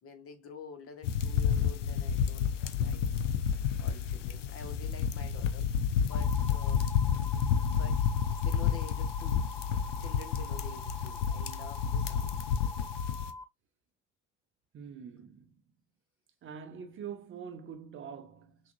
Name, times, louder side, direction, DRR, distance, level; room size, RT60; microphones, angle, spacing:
voice 1, 0.0-3.0 3.8-5.7 5.9-6.9 7.5-8.0 8.4-9.5 10.0-12.4, left 6 dB, 35° left, 1.2 m, -48 dB
sound 1, 1.0-13.3, left 7 dB, 75° left, 0.5 m, -30 dB
sound 2, 6.1-13.4, left 2 dB, 10° left, 0.4 m, -44 dB
voice 2, 14.7-15.5 16.4-18.7, right 7 dB, 35° right, 0.7 m, -44 dB
5.7 x 2.5 x 2.5 m
figure-of-eight pair, 55°, 37 cm